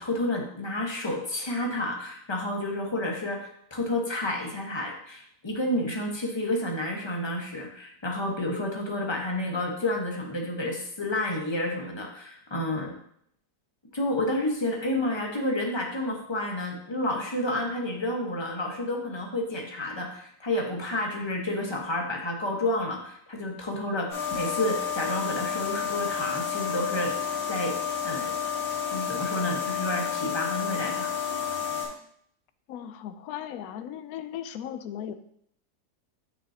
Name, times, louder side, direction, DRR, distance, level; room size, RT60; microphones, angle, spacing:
voice 1, 0.0-12.9 13.9-27.1 27.5-27.8 28.0-28.3 28.9-31.1, left 1 dB, 20° left, 0 dB, 1.1 m, -30 dB
sound 1, 24.1-31.8, left 7 dB, 35° left, 3.4 m, -30 dB
voice 2, 32.7-35.1, left 10 dB, 70° left, 10 dB, 1.0 m, -37 dB
9.2 x 6.3 x 2.8 m, 0.68 s
omnidirectional pair, 1.8 m